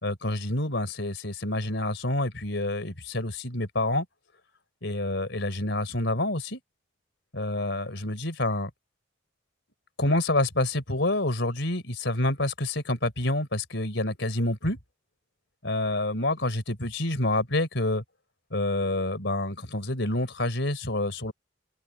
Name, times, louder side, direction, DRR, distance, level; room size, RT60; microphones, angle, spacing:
voice 1, 0.0-4.1 4.8-6.6 7.3-8.7 10.0-14.8 15.6-18.0 18.5-21.3, left 1 dB, 65° left, 4.2 m, -28 dB
head